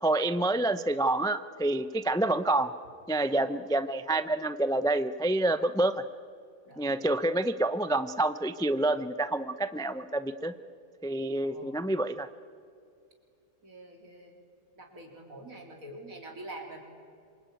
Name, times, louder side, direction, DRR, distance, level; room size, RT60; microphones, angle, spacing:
voice 1, 0.0-2.7 3.1-6.0 6.8-10.5 11.0-12.3, right 2 dB, 5° left, 12 dB, 0.3 m, -28 dB
voice 2, 6.7-7.1 11.4-11.9 13.6-14.4 14.8-16.8, right 1 dB, 70° right, 2 dB, 4.2 m, -46 dB
26.5 x 23.5 x 9.3 m, 2.4 s
omnidirectional pair, 1.5 m